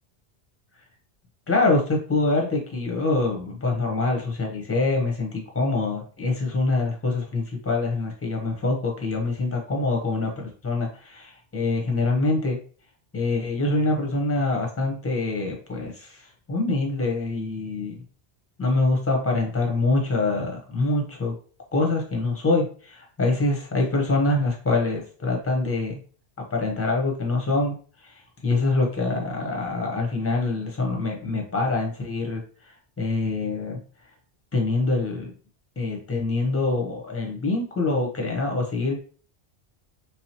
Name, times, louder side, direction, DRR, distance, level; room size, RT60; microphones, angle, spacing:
voice 1, 1.5-12.6 13.1-18.0 18.6-21.3 21.7-26.0 26.5-27.8 28.0-33.8 34.5-35.3 35.8-39.0, left 3 dB, 15° left, 0 dB, 0.8 m, -25 dB
3.6 x 3.0 x 2.8 m, 0.41 s
omnidirectional pair, 1.1 m